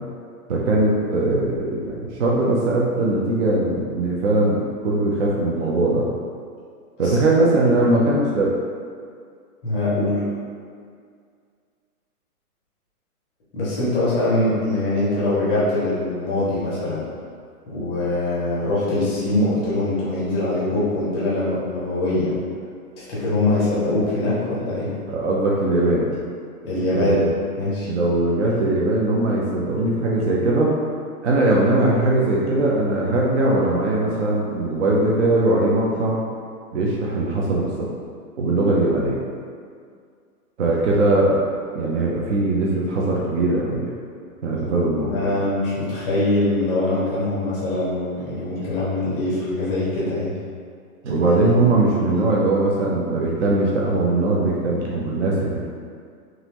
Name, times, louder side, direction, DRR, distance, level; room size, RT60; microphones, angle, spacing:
voice 1, 0.5-6.1 7.0-8.5 25.1-26.1 26.9-27.3 27.8-30.7 31.2-36.2 36.7-37.9 38.4-39.2 40.6-41.4 41.7-43.9 44.4-45.3 51.0-55.7, right 2 dB, 50° right, -4 dB, 0.6 m, -20 dB
voice 2, 9.6-10.2 13.5-17.0 17.7-22.3 23.0-24.9 26.6-27.2 27.6-27.9 45.0-50.3, left 2 dB, 5° left, -9 dB, 0.6 m, -23 dB
3.8 x 3.0 x 2.9 m, 2.1 s
hypercardioid pair, 165°, 46 cm